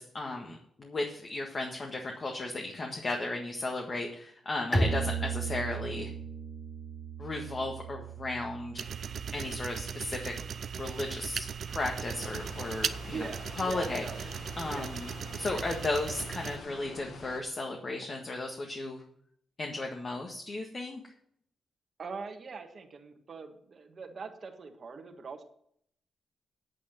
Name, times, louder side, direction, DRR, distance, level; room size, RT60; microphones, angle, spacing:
voice 1, 0.0-6.1 7.2-8.8 9.3-10.3 10.8-13.3 13.6-14.0 14.6-15.1 15.4-19.0 19.6-21.1, left 2 dB, 40° left, 1 dB, 1.6 m, -35 dB
Bowed string instrument, 4.7-10.3, right 3 dB, 25° left, 3.3 m, -35 dB
sound 1, 8.8-16.6, right 7 dB, 65° right, 0.6 m, -38 dB
sound 2, 12.1-17.4, left 4 dB, 70° left, 1.6 m, -47 dB
voice 2, 13.1-14.3 14.7-14.9 22.0-25.4, right 4 dB, 50° right, 4 dB, 1.7 m, -42 dB
8.7 x 8.5 x 7.4 m, 0.68 s
cardioid pair, 100°, 0 cm